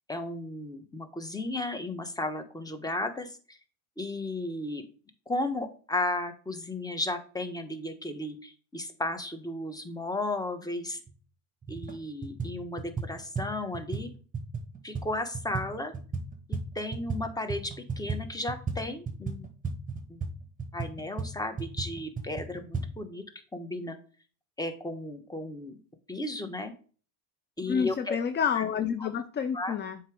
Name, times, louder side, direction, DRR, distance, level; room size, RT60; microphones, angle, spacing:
voice 1, 0.1-3.6 4.0-4.9 5.3-11.0 11.7-14.1 14.8-15.9 16.5-19.5 20.1-20.2 20.7-23.2 23.5-24.0 24.6-25.8 26.1-26.7 27.6-28.2 28.5-28.6 29.0-29.1 29.5-29.8, left 2 dB, 10° left, 7 dB, 1.1 m, -34 dB
sound 1, 11.1-11.2 11.6-12.0 12.2-17.2 17.5-22.9, right 4 dB, 15° right, 1.2 m, -35 dB
voice 2, 27.7-30.0, left 7 dB, 25° left, 10 dB, 0.4 m, -29 dB
7.2 x 2.9 x 5.0 m, 0.39 s
supercardioid pair, 95°, 46 cm